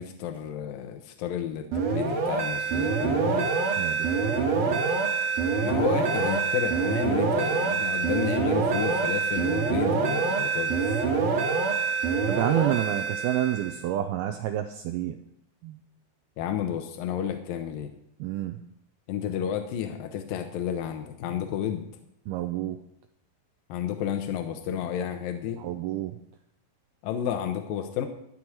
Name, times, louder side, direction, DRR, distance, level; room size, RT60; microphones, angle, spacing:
voice 1, 0.0-3.5 5.6-10.8 16.4-17.9 19.1-21.8 23.7-25.6 27.0-28.1, left 9 dB, 80° left, 6 dB, 2.1 m, -31 dB
sound 1, 1.7-13.8, right 5 dB, 50° right, 3.0 m, -26 dB
voice 2, 3.8-4.4 4.7-4.9 12.3-15.2 15.6-15.8 18.2-18.7 22.3-22.8 25.6-26.2, right 12 dB, 85° right, 7 dB, 2.2 m, -29 dB
13.0 x 6.2 x 8.6 m, 0.76 s
omnidirectional pair, 5.1 m